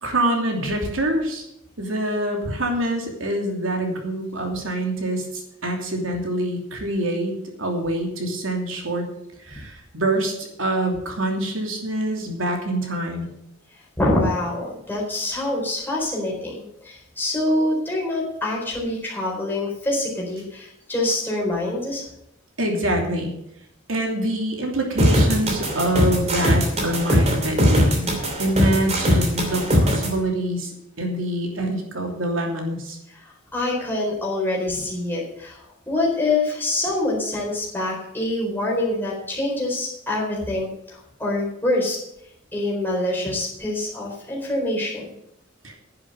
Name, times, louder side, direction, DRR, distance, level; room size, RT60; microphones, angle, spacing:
voice 1, 0.0-1.4 1.8-7.3 7.6-9.1 9.5-13.3 22.6-23.3 23.9-28.1 28.4-30.7 31.0-33.0 45.6-45.8, right 1 dB, 90° right, 2 dB, 2.9 m, -25 dB
voice 2, 14.0-22.0 33.1-42.0 42.5-45.0, left 2 dB, 10° left, -3 dB, 4.2 m, -25 dB
sound 1, 25.0-30.1, equal, 35° right, 2.8 m, -19 dB
10.5 x 7.6 x 7.9 m, 0.78 s
head